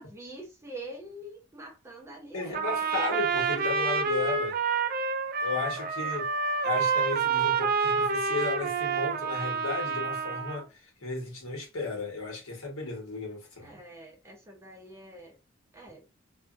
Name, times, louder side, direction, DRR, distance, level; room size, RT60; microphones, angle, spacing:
voice 1, 0.0-3.1 6.0-6.1 13.6-15.4 15.7-16.1, right 1 dB, 15° right, 0.7 m, -45 dB
voice 2, 2.3-4.6 5.4-6.2 6.6-10.6 11.0-13.8, left 4 dB, 90° left, 1.3 m, -34 dB
Trumpet, 2.5-10.6, right 5 dB, 45° right, 0.3 m, -28 dB
2.6 x 2.4 x 2.5 m
head